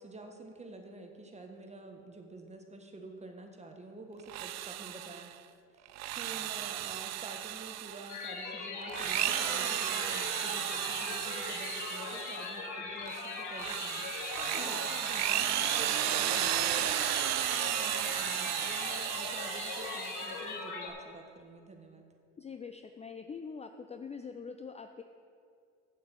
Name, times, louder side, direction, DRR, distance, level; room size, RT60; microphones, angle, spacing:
voice 1, 0.0-5.3 5.7-17.4 17.7-22.0, right 2 dB, 20° right, 4 dB, 1.5 m, -48 dB
Drill, 4.2-5.3 5.9-8.2 8.8-12.5 13.0-20.5, right 13 dB, 50° right, 0.5 m, -34 dB
sound 1, 8.1-20.9, left 4 dB, 55° left, 2.2 m, -40 dB
voice 2, 22.4-25.0, left 5 dB, 20° left, 7 dB, 0.5 m, -44 dB
7.4 x 6.8 x 7.6 m, 2.3 s
hypercardioid pair, 75°, 35 cm